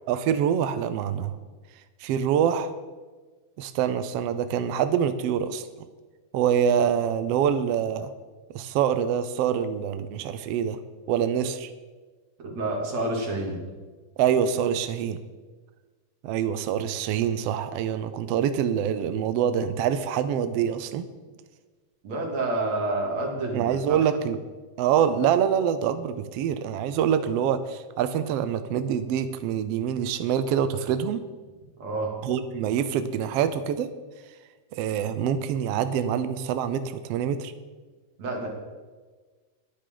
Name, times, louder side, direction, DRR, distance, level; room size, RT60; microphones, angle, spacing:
voice 1, 0.1-1.3 2.0-2.7 3.6-5.7 6.3-8.1 8.5-10.8 11.1-11.7 14.2-15.2 16.2-21.1 23.5-24.4 24.8-31.2 32.2-33.9 34.7-37.5, right 8 dB, 80° right, 11 dB, 1.4 m, -25 dB
voice 2, 12.4-13.6 22.0-24.0 31.8-32.1 38.2-38.5, right 2 dB, 60° right, -1 dB, 3.9 m, -28 dB
22.0 x 9.9 x 3.9 m, 1.4 s
omnidirectional pair, 3.5 m